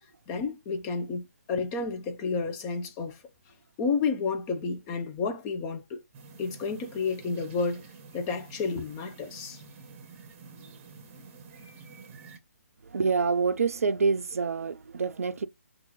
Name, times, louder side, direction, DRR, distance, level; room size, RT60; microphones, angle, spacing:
voice 1, 0.3-3.2 3.8-6.0 6.4-7.9 8.1-9.6, left 4 dB, 20° left, 0.6 m, -31 dB
sound 1, 6.1-12.4, right 4 dB, 25° right, 1.0 m, -49 dB
voice 2, 12.8-15.5, right 5 dB, 65° right, 0.5 m, -27 dB
5.7 x 2.6 x 3.0 m
figure-of-eight pair, 140°, 8 cm